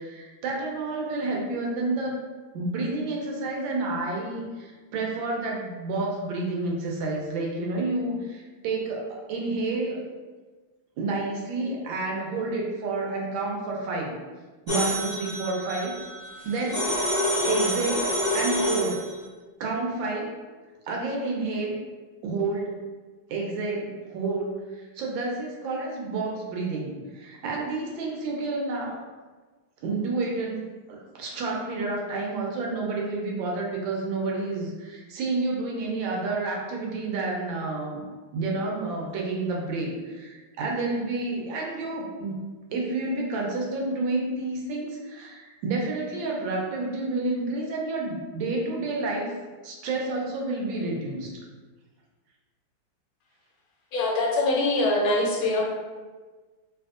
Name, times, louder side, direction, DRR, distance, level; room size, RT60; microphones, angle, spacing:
voice 1, 0.0-2.2 2.5-10.0 11.0-14.2 14.7-16.0 16.4-16.9 17.4-19.0 19.6-20.4 20.9-21.8 22.2-22.8 23.3-29.0 29.8-30.6 30.9-38.0 38.3-42.4 42.7-49.3 49.6-51.3, right 3 dB, 75° right, -2 dB, 1.3 m, -30 dB
sound 1, 14.7-19.1, equal, 15° right, 0.9 m, -27 dB
voice 2, 53.9-55.6, left 2 dB, 80° left, -2 dB, 1.5 m, -23 dB
3.4 x 2.6 x 2.4 m, 1.3 s
omnidirectional pair, 2.2 m